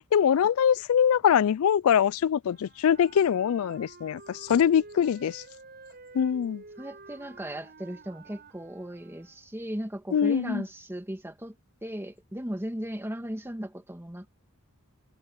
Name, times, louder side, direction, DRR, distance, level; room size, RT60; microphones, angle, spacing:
voice 1, 0.1-5.4 6.1-6.6 10.1-10.6, left 8 dB, 65° left, 0.3 m, -23 dB
Wind instrument woodwind instrument, 2.4-9.7, right 3 dB, 45° right, 7.7 m, -50 dB
voice 2, 6.8-11.5 11.8-14.3, equal, 10° right, 1.7 m, -36 dB
head